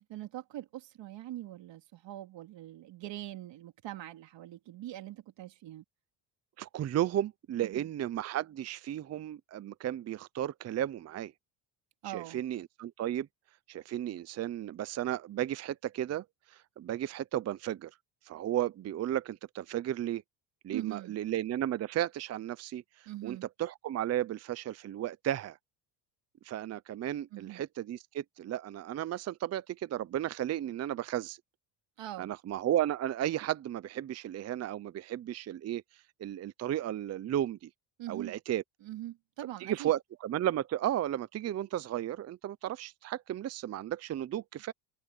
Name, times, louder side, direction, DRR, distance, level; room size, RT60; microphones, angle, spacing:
voice 1, 0.1-5.8 7.6-7.9 12.0-12.4 20.7-21.2 23.1-23.5 27.3-27.6 32.0-32.3 38.0-38.3 38.8-39.9, right 14 dB, 65° right, 2.5 m, -42 dB
voice 2, 6.6-11.3 12.0-13.3 13.7-17.9 18.3-20.2 20.6-25.6 26.4-31.4 32.2-35.8 36.2-37.7 38.1-38.6 39.6-44.7, right 12 dB, 35° right, 0.6 m, -34 dB
cardioid pair, 120°, 48 cm